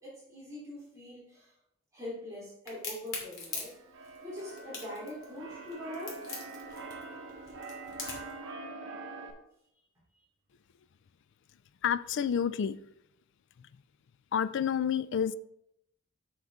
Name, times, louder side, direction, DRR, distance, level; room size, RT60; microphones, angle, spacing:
voice 1, 0.0-1.5 1.9-3.7 4.2-6.2, left 1 dB, 15° right, -8 dB, 3.3 m, -43 dB
Crack, 2.7-8.4, left 4 dB, 90° left, 2.7 m, -41 dB
Keyboard (musical), 3.4-9.3, right 3 dB, 65° right, 1.3 m, -44 dB
voice 2, 11.8-12.8 14.3-15.3, left 8 dB, 60° left, 15 dB, 0.4 m, -29 dB
8.0 x 6.3 x 3.6 m, 0.76 s
head